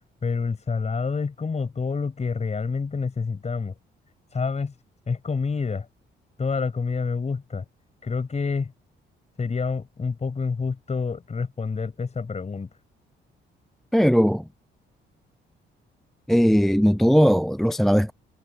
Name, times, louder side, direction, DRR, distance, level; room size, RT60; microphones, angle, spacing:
voice 1, 0.2-3.7 4.3-4.7 5.1-5.9 6.4-7.6 8.0-8.7 9.4-12.7, left 5 dB, 35° left, 7.1 m, -28 dB
voice 2, 13.9-14.4 16.3-18.1, equal, ahead, 0.4 m, -18 dB
cardioid pair, 90°, 20 cm